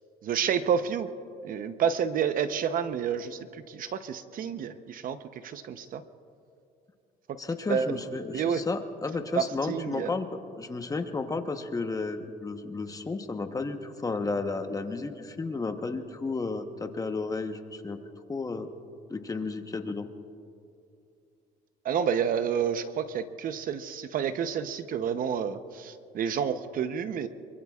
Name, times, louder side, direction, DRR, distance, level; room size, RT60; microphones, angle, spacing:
voice 1, 0.2-1.1 1.4-3.4 3.7-5.2 5.4-6.0 7.3-7.4 7.7-8.0 8.3-8.6 9.3-10.1 21.8-27.3, right 7 dB, 55° right, 10 dB, 0.8 m, -29 dB
voice 2, 7.4-10.3 10.6-18.0 18.3-18.7 19.1-20.1, left 3 dB, 20° left, 7 dB, 1.0 m, -32 dB
25.5 x 23.5 x 2.4 m, 2.5 s
cardioid pair, 110°, 17 cm